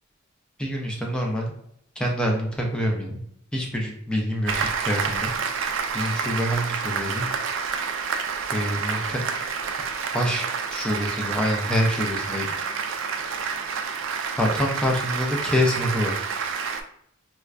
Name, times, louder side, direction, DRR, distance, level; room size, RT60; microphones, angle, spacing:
voice 1, 0.6-1.5 2.0-3.2 3.5-5.3 5.9-7.3 8.5-9.2 10.1-12.5 14.4-16.1, equal, 5° left, -1 dB, 0.5 m, -26 dB
Applause, 4.5-16.8, right 5 dB, 70° right, 0.4 m, -29 dB
4.3 x 2.2 x 2.4 m, 0.72 s
head